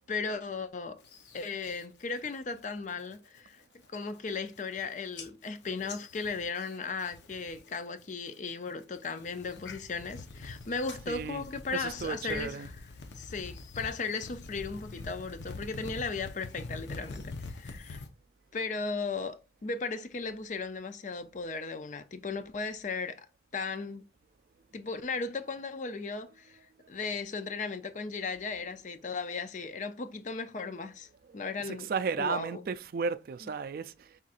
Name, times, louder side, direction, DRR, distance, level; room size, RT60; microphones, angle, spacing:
voice 1, 0.1-1.0 1.3-3.6 3.9-12.7 13.1-18.0 18.5-23.3 23.5-24.0 24.7-26.6 26.9-31.1 31.3-31.9 32.2-32.7 33.4-33.5, left 4 dB, 40° left, 0.5 m, -36 dB
sound 1, 1.0-1.8 2.2-2.6 3.0-3.4 3.8-3.9 4.1-4.8 5.2-7.7 8.0-8.5 9.0-18.1, left 3 dB, 75° left, 0.8 m, -45 dB
voice 2, 11.1-12.7 28.6-28.7 31.3-34.2, right 5 dB, 50° right, 0.3 m, -35 dB
5.6 x 3.6 x 2.5 m
head